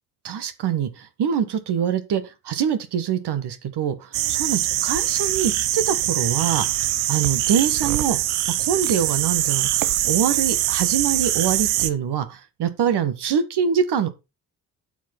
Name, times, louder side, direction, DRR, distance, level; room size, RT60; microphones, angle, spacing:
voice 1, 0.2-6.7 7.1-8.2 8.6-14.1, right 8 dB, 55° right, 1.6 m, -24 dB
sound 1, 4.1-11.9, right 14 dB, 75° right, 0.8 m, -23 dB
8.9 x 4.9 x 5.8 m
figure-of-eight pair, 40°, 47 cm